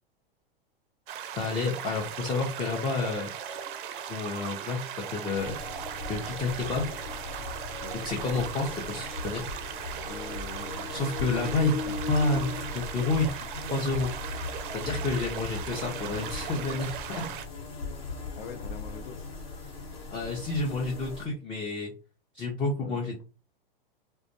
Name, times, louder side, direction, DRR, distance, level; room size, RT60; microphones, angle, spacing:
sound 1, 1.1-17.5, right 9 dB, 60° right, 0.4 m, -38 dB
sound 2, 1.2-13.3 13.6-13.7, equal, 40° left, 0.9 m, -49 dB
voice 1, 1.3-3.3 4.0-5.6 6.1-6.9 8.0-9.4 10.9-11.7 12.1-13.3 13.7-14.1 14.7-17.2 20.1-21.9 22.3-23.1, left 3 dB, 20° left, 0 dB, 0.5 m, -29 dB
sound 3, 5.4-21.3, left 3 dB, 80° left, 1.1 m, -38 dB
voice 2, 10.0-10.9 18.3-19.3 22.8-23.2, left 4 dB, 60° left, 6 dB, 0.6 m, -44 dB
2.2 x 2.1 x 2.8 m, 0.34 s
hypercardioid pair, 100°, 29 cm